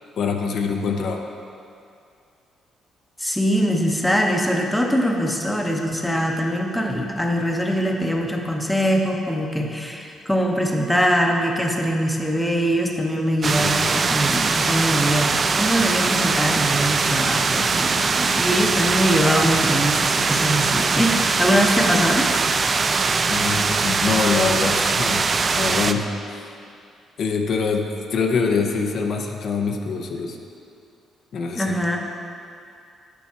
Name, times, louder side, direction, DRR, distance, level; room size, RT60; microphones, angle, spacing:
voice 1, 0.2-1.2 13.6-13.8 23.3-25.3 25.6-26.1 27.2-30.4 31.3-31.8, left 5 dB, 65° left, 3 dB, 0.6 m, -24 dB
voice 2, 3.2-22.3 31.5-32.0, equal, 5° left, 1 dB, 0.8 m, -22 dB
sound 1, 13.4-25.9, right 4 dB, 40° right, 0.3 m, -21 dB
8.3 x 5.5 x 4.4 m, 2.5 s
cardioid pair, 90°, 0 cm